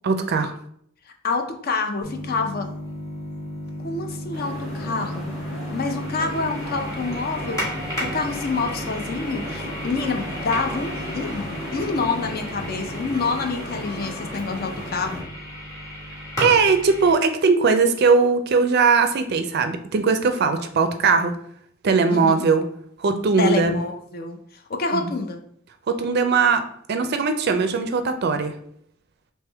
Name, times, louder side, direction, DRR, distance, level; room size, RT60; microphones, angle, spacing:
voice 1, 0.0-0.5 16.4-21.3 21.8-22.6 23.0-23.8 24.9-25.0 25.9-26.6 26.9-28.5, right 4 dB, 50° right, 8 dB, 0.4 m, -19 dB
voice 2, 1.2-2.7 3.8-5.3 5.7-7.6 8.0-15.2 22.1-22.4 23.4-24.4 24.7-25.4, left 4 dB, 50° left, 5 dB, 0.5 m, -27 dB
sound 1, 2.0-17.1, equal, 15° left, 1.6 m, -34 dB
sound 2, 4.3-15.2, equal, 70° left, 1.6 m, -35 dB
3.5 x 3.0 x 3.3 m, 0.67 s
head